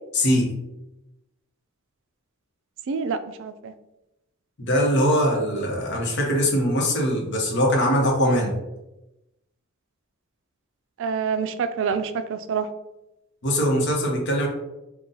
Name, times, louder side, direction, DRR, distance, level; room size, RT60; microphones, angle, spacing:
voice 1, 0.1-0.5 4.6-8.5 13.4-14.5, equal, 60° left, 0 dB, 0.9 m, -21 dB
voice 2, 2.9-3.7 11.0-12.7, right 6 dB, 65° right, 12 dB, 0.3 m, -27 dB
4.0 x 2.3 x 3.8 m, 0.95 s
head